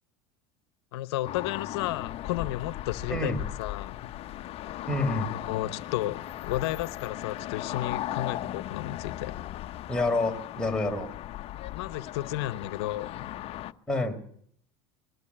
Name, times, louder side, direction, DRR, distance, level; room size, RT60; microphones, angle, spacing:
voice 1, 0.9-3.3 3.6-3.9 4.6-4.9 5.2-9.4 11.7-13.3, left 15 dB, 80° left, 0.9 m, -33 dB
sound 1, 1.2-13.7, left 14 dB, 45° left, 0.9 m, -37 dB
voice 2, 3.1-3.5 4.9-5.3 9.9-11.1 13.9-14.2, left 2 dB, 5° left, 4.4 m, -28 dB
20.5 x 14.5 x 8.7 m
supercardioid pair, 105°, 13 cm